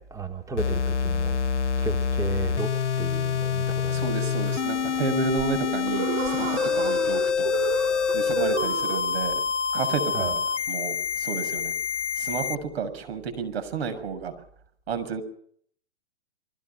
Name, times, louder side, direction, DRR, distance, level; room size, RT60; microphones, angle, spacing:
voice 1, 0.0-1.4 1.8-2.7 3.0-4.1 10.1-10.3, right 4 dB, 10° right, 4 dB, 2.8 m, -34 dB
sound 1, 0.6-12.6, left 6 dB, 90° left, 1.0 m, -26 dB
voice 2, 3.9-7.5 8.1-9.4 9.7-10.4 10.7-11.7 12.2-14.3 14.9-15.2, right 6 dB, 65° right, 10 dB, 6.7 m, -31 dB
sound 2, 4.4-9.4, right 7 dB, 35° right, 4.5 m, -33 dB
28.0 x 23.5 x 6.0 m, 0.62 s
hypercardioid pair, 125°, 34 cm